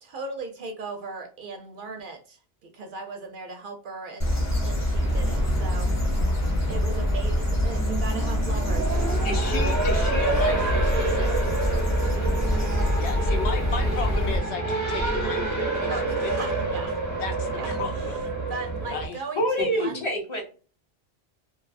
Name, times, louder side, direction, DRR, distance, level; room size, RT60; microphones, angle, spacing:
voice 1, 0.0-4.3 4.6-6.1 6.7-9.0 10.8-12.7 15.9-17.0 17.5-20.1, right 3 dB, 60° right, 4 dB, 0.6 m, -38 dB
sound 1, 4.2-14.4, left 1 dB, 15° left, 1.1 m, -25 dB
Race car auto racing, 5.0-19.1, right 3 dB, 20° right, 0.6 m, -29 dB
voice 2, 9.2-11.6 13.0-16.3 17.2-18.2 18.9-19.2 19.6-19.9, left 4 dB, 85° left, 3 dB, 1.0 m, -34 dB
voice 3, 19.4-20.4, equal, 30° left, 0 dB, 0.6 m, -26 dB
2.6 x 2.3 x 2.4 m, 0.38 s
omnidirectional pair, 1.1 m